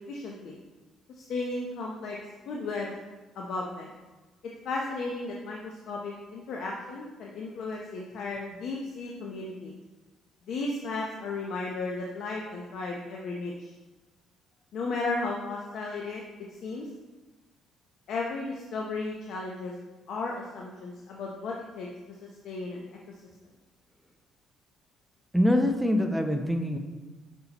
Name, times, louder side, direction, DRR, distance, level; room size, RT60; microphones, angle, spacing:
voice 1, 0.1-0.6 1.2-2.2 2.5-2.9 3.4-3.9 4.6-9.7 10.5-13.7 14.7-16.2 16.5-16.9 18.1-19.7 20.1-21.9 22.4-22.9, left 3 dB, 60° left, -1 dB, 0.8 m, -34 dB
voice 2, 25.3-26.8, left 1 dB, ahead, 4 dB, 0.5 m, -24 dB
8.0 x 5.6 x 2.9 m, 1.2 s
cardioid pair, 150°, 0 cm